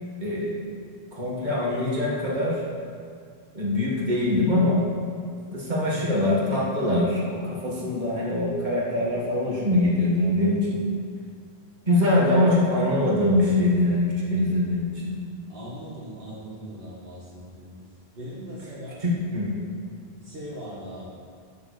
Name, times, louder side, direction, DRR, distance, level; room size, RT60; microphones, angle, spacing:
voice 1, 0.2-0.6 1.1-2.6 3.5-4.8 5.5-10.8 11.9-15.1 19.0-19.5, left 1 dB, 45° right, -6 dB, 2.3 m, -23 dB
voice 2, 15.5-17.8 18.1-19.1 20.2-21.1, equal, 65° right, -8 dB, 2.0 m, -39 dB
9.5 x 6.4 x 6.5 m, 2.2 s
omnidirectional pair, 1.0 m